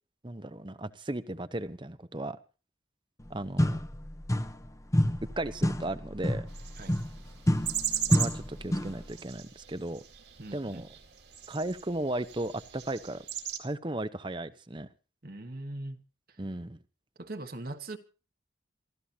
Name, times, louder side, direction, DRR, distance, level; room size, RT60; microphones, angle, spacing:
voice 1, 0.2-2.4 3.3-3.8 5.4-6.5 8.1-10.0 10.5-10.9 11.5-13.3 13.6-14.9 16.4-16.8, right 1 dB, 25° right, 0.8 m, -35 dB
sound 1, 3.2-3.3 3.6-4.7 4.9-9.1, left 1 dB, 15° left, 0.8 m, -29 dB
sound 2, 6.5-13.6, right 10 dB, 70° right, 2.3 m, -38 dB
voice 2, 10.4-10.8 15.2-16.0 17.2-18.0, right 2 dB, 50° right, 1.4 m, -40 dB
27.0 x 14.0 x 2.8 m
head